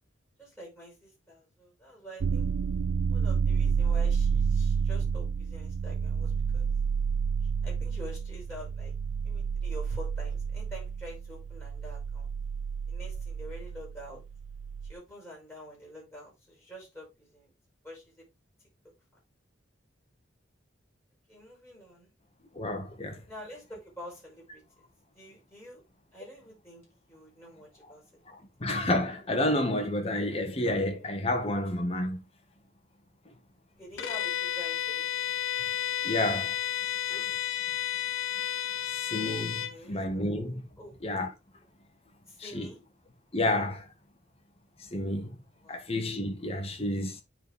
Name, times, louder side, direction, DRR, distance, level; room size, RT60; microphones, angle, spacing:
voice 1, 0.4-2.5 3.1-6.7 7.4-8.9 9.2-12.3 12.9-14.2 14.8-17.5 17.8-18.2 21.3-22.1 23.3-24.9 25.1-25.8 26.1-28.0 33.8-35.1 39.7-40.3 40.8-40.9 42.3-42.8 45.6-45.8, equal, 15° left, 5.4 m, -47 dB
sound 1, 2.2-14.9, right 6 dB, 75° right, 0.4 m, -30 dB
voice 2, 22.5-23.2 28.3-32.2 36.0-36.5 37.1-37.2 38.9-40.6 41.0-41.3 42.4-42.7 43.3-43.8 44.9-45.4 45.7-47.2, left 1 dB, 30° left, 1.5 m, -30 dB
Bowed string instrument, 34.0-39.8, left 11 dB, 90° left, 0.8 m, -32 dB
9.7 x 4.3 x 3.4 m
head